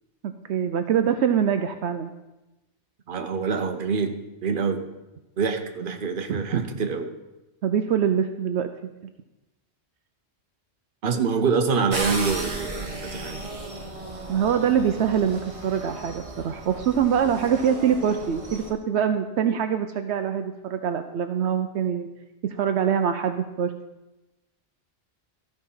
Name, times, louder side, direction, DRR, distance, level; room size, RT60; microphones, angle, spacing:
voice 1, 0.2-2.1 6.3-6.6 7.6-8.7 14.3-22.1 22.4-23.7, right 8 dB, 75° right, 7 dB, 0.9 m, -24 dB
voice 2, 3.1-4.1 4.4-4.8 5.4-7.1 11.0-13.5, right 5 dB, 50° right, 6 dB, 1.1 m, -26 dB
sound 1, 11.9-18.7, right 2 dB, 30° right, 1.3 m, -35 dB
13.5 x 5.1 x 5.6 m, 1.0 s
omnidirectional pair, 1.2 m